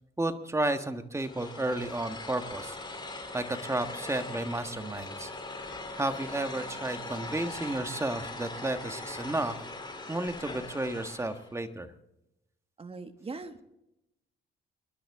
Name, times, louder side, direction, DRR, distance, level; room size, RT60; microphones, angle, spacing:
voice 1, 0.2-2.8 3.3-5.3 5.6-9.6 10.1-11.9, right 2 dB, 15° right, 8 dB, 1.5 m, -32 dB
sound 1, 1.2-11.5, left 2 dB, 20° left, 3.2 m, -41 dB
voice 2, 12.8-13.6, right 3 dB, 30° right, 8 dB, 1.6 m, -41 dB
27.0 x 11.5 x 3.6 m, 0.86 s
cardioid pair, 90°, 20 cm